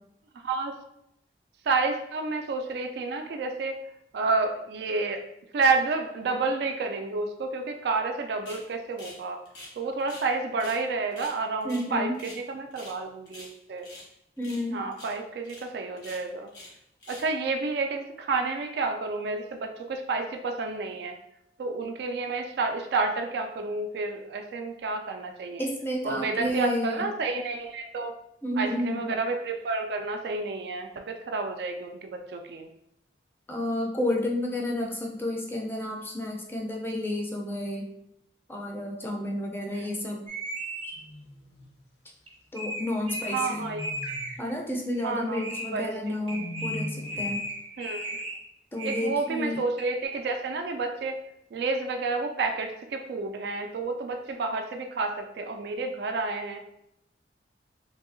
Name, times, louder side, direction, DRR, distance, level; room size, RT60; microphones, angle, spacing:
voice 1, 0.4-0.8 1.7-3.8 4.1-5.2 5.5-9.4 9.8-13.9 14.7-16.5 17.1-21.2 21.6-25.7 26.0-28.1 28.6-32.7 39.7-39.9 43.3-43.9 45.0-45.5 45.7-46.2 47.8-48.1 48.8-51.2 51.5-56.6, right 3 dB, 65° right, 5 dB, 0.3 m, -30 dB
sound 1, 8.4-8.6 9.0-9.2 9.4-10.3 10.6-10.8 11.1-12.4 12.7-13.0 13.2-14.1 14.4-14.7 14.9-15.1 15.4-15.6 16.0-16.7 17.0-17.3, left 1 dB, 90° left, 1.1 m, -46 dB
voice 2, 11.6-12.2 14.4-14.8 25.6-27.1 28.4-29.1 33.5-37.9 38.5-40.2 42.5-43.7 44.4-47.4 48.7-49.6, left 1 dB, 10° left, -1 dB, 0.4 m, -31 dB
sound 2, 40.3-41.0 42.3-42.4 42.5-43.5 43.8-44.3 44.9-45.1 45.3-45.7 46.3-48.4 48.8-49.3 49.8-49.9, right 1 dB, 30° right, 0.7 m, -35 dB
sound 3, 40.9-41.8 43.1-44.4 45.8-47.4, equal, 70° left, 0.6 m, -41 dB
3.3 x 2.7 x 2.5 m, 0.80 s
head